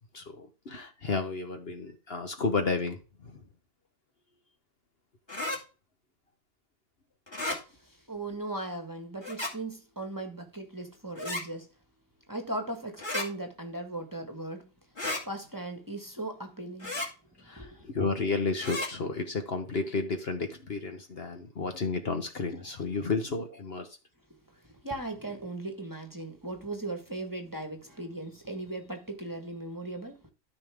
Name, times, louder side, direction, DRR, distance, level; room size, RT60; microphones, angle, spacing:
voice 1, 0.1-3.0 17.4-23.9, left 4 dB, 50° left, 1.2 m, -32 dB
sound 1, 5.3-5.6 7.3-7.6 9.2-9.5 11.2-11.4 13.0-13.3 15.0-15.2 16.8-17.1 18.6-18.9, left 2 dB, 20° left, 2.3 m, -33 dB
voice 2, 7.8-11.7 12.3-14.7 15.2-17.0 17.6-17.9 24.8-30.2, right 2 dB, 15° right, 1.5 m, -38 dB
13.0 x 5.3 x 3.5 m
omnidirectional pair, 1.4 m